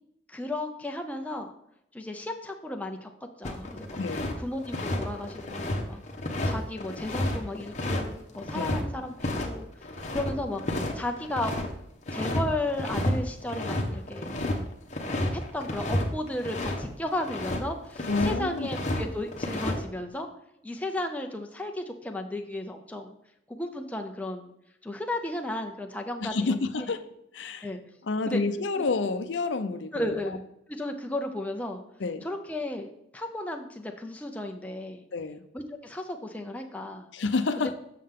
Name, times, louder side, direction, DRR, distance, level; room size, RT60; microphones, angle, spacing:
voice 1, 0.3-1.5 1.9-3.1 3.4-4.0 4.4-6.0 6.5-9.7 10.1-10.6 10.9-11.5 12.1-14.4 15.3-20.3 20.6-23.1 23.5-24.5 24.8-26.9 27.6-27.8 28.3-28.4 28.7-28.8 29.9-30.4 30.7-31.8 32.2-35.0 35.5-37.1 37.6-37.7, left 1 dB, 10° left, 0.6 m, -34 dB
sound 1, 3.4-4.3 4.6-8.8 9.2-9.5 9.7-11.7 12.1-12.4 12.7-13.2 13.4-16.8 17.1-17.6 18.0-19.0 19.3-19.8, left 1 dB, 35° left, 1.0 m, -31 dB
voice 2, 18.1-18.7 26.2-27.0 27.3-27.7 28.0-30.4 32.0-32.2 35.1-35.4 37.1-37.7, left 3 dB, 75° left, 0.5 m, -29 dB
7.6 x 6.5 x 3.7 m
head